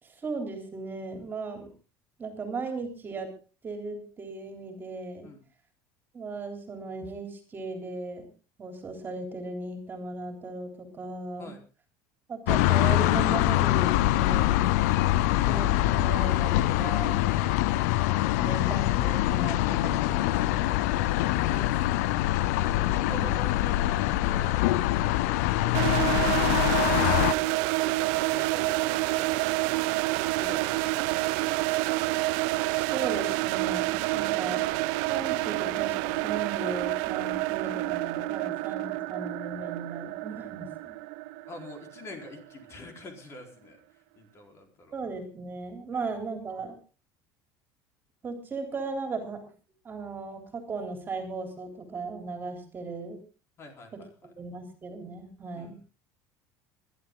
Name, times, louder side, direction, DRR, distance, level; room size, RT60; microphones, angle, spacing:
voice 1, 0.0-1.7 2.2-3.3 3.6-5.3 6.1-8.3 8.6-11.5 12.3-14.7 15.5-17.3 18.4-20.6 23.1-23.4 32.7-34.6 35.1-41.0 44.9-46.7 48.2-49.4 49.8-53.2 54.4-55.7, right 3 dB, 25° right, 5 dB, 3.5 m, -37 dB
sound 1, 12.5-27.3, left 15 dB, 90° left, 0.7 m, -24 dB
voice 2, 21.1-22.1 22.4-24.7 25.3-27.2 28.1-29.9 30.4-31.7 34.1-34.6 35.0-35.3 41.5-45.0 45.9-46.1 53.6-54.3 55.5-55.7, left 2 dB, 35° left, 3 dB, 4.3 m, -46 dB
sound 2, 25.7-42.6, right 20 dB, 80° right, 0.7 m, -28 dB
21.5 x 12.0 x 3.9 m, 0.35 s
cardioid pair, 140°, 8 cm